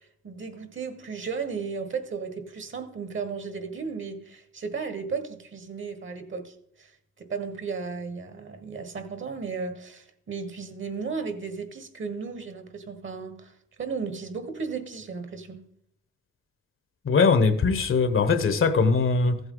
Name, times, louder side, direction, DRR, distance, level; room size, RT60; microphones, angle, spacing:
voice 1, 0.2-6.9 7.2-15.6, right 5 dB, 40° right, 1.5 m, -35 dB
voice 2, 17.0-19.4, left 4 dB, 45° left, 1.1 m, -21 dB
14.5 x 8.0 x 3.9 m
cardioid pair, 90°, 30 cm